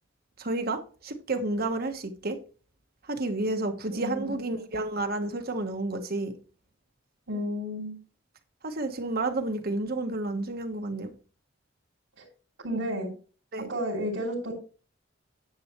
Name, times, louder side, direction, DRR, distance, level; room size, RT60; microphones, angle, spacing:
voice 1, 0.4-2.4 3.0-6.3 8.6-11.1 13.5-13.7, right 2 dB, 50° right, 1.3 m, -30 dB
voice 2, 3.9-4.7 7.3-7.9 12.2-12.3 12.6-13.1 13.7-14.5, equal, 75° right, 3.1 m, -32 dB
10.5 x 7.9 x 3.1 m
head